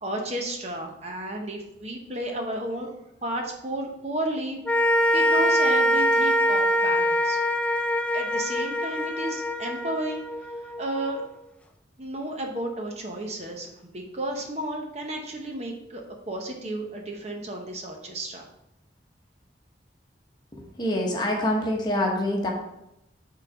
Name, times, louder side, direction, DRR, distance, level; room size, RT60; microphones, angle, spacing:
voice 1, 0.0-2.9 3.2-4.6 5.1-7.4 8.1-10.2 10.6-11.2 12.0-18.5, right 1 dB, 35° right, 2 dB, 0.9 m, -32 dB
sound 1, 4.7-11.1, equal, 5° left, 0.3 m, -23 dB
voice 2, 20.5-22.5, left 1 dB, 25° left, 0 dB, 1.1 m, -26 dB
6.4 x 3.9 x 5.7 m, 0.85 s
head